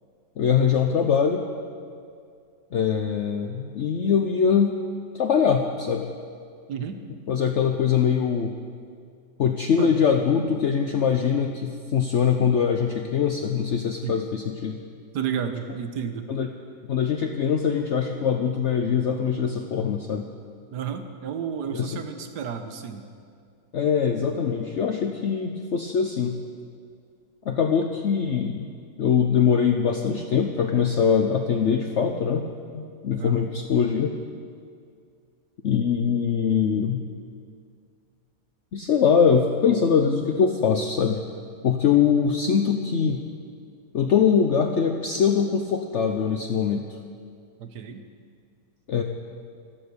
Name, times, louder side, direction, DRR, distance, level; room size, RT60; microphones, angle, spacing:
voice 1, 0.4-1.4 2.7-4.7 5.1-6.1 7.3-8.5 9.4-14.8 16.3-16.5 16.9-20.2 21.7-21.9 23.7-26.3 27.5-28.7 29.0-32.5 32.7-34.1 35.6-37.0 38.7-41.2 41.6-43.2 43.9-46.9 48.9-49.0, left 7 dB, 55° left, 4 dB, 0.9 m, -22 dB
voice 2, 6.7-7.0 9.8-10.0 14.0-14.1 15.1-16.3 20.7-23.1 33.2-33.5 47.6-48.0, right 7 dB, 90° right, 7 dB, 1.5 m, -32 dB
13.0 x 12.5 x 6.9 m, 2.2 s
omnidirectional pair, 1.7 m